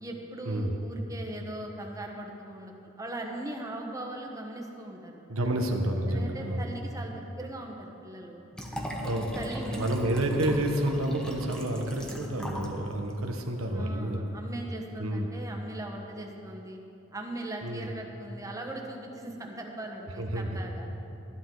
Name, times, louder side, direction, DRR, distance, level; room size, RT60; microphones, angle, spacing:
voice 1, 0.0-5.6 6.1-8.4 8.7-9.0 9.3-10.2 13.7-16.8 17.1-20.9, right 1 dB, 15° right, 1 dB, 1.1 m, -40 dB
voice 2, 5.3-6.7 9.0-9.3 9.7-14.2 15.0-15.3 17.6-17.9 20.2-20.6, right 1 dB, 90° right, 3 dB, 1.1 m, -29 dB
Liquid, 8.5-12.8 13.1-13.2, equal, 5° left, 1.0 m, -38 dB
12.5 x 12.0 x 3.9 m, 3.0 s
head